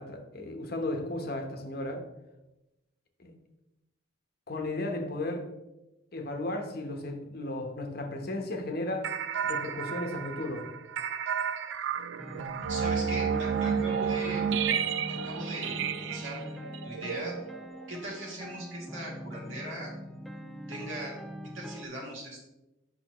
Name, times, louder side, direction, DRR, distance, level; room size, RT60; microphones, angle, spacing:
voice 1, 0.0-2.1 3.2-3.3 4.5-5.5 6.1-9.1 9.4-10.7, left 1 dB, 50° left, 4 dB, 1.0 m, -34 dB
sound 1, 9.0-17.9, right 7 dB, 70° right, 0.4 m, -32 dB
sound 2, 12.2-21.9, equal, ahead, 0.4 m, -42 dB
voice 2, 12.7-14.7 15.1-16.4 16.8-17.3 17.9-19.9 20.7-21.2 21.5-22.5, right 1 dB, 90° right, -2 dB, 2.4 m, -39 dB
8.7 x 5.7 x 3.0 m, 0.96 s
head